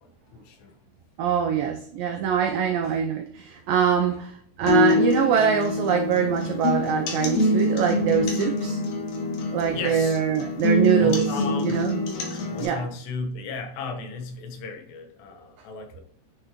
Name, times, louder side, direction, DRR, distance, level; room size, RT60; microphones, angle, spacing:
voice 1, 0.0-0.7 9.7-10.2 11.0-11.9 12.5-16.0, left 4 dB, 90° left, 5 dB, 3.2 m, -35 dB
voice 2, 1.2-8.8 9.5-11.3 11.6-12.0 12.6-12.9, right 8 dB, 90° right, 4 dB, 2.0 m, -24 dB
sound 1, 4.7-12.7, left 2 dB, 65° left, 2.5 m, -25 dB
9.8 x 3.3 x 2.9 m, 0.63 s
omnidirectional pair, 4.7 m